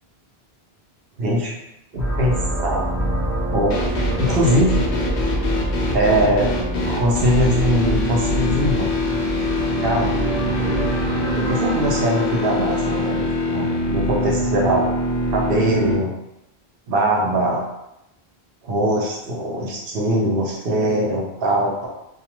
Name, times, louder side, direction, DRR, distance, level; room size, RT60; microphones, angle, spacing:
voice 1, 1.2-1.5 1.9-2.8 3.5-4.8 5.9-6.5 6.9-8.9 9.8-10.1 11.3-14.9 15.3-16.1 16.9-17.6 18.6-21.9, right 1 dB, 65° right, -2 dB, 0.8 m, -21 dB
sound 1, 1.9-13.9, right 1 dB, 5° right, 0.9 m, -26 dB
sound 2, 3.7-16.0, left 1 dB, 55° left, 0.6 m, -24 dB
2.3 x 2.3 x 2.8 m, 0.86 s
omnidirectional pair, 1.0 m